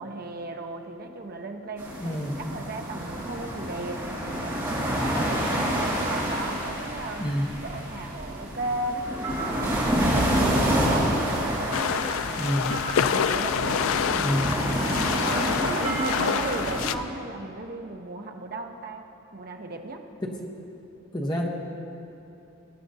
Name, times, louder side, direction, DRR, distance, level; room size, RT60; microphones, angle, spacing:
voice 1, 0.0-2.2 2.5-7.3 7.6-9.9 10.1-12.7 13.1-14.3 14.6-14.8 15.2-20.0, right 2 dB, 45° right, 4 dB, 0.7 m, -36 dB
sound 1, 1.8-16.9, equal, 20° right, 2.1 m, -28 dB
voice 2, 2.0-2.4 7.2-7.5 12.4-12.8 14.1-14.6 16.2-16.5 20.3-20.5 21.1-21.5, equal, 20° left, -1 dB, 0.9 m, -28 dB
sound 2, 5.9-16.6, right 5 dB, 60° right, 1.8 m, -42 dB
sound 3, 11.7-17.0, left 7 dB, 70° left, 0.3 m, -27 dB
19.0 x 9.8 x 2.7 m, 2.9 s
head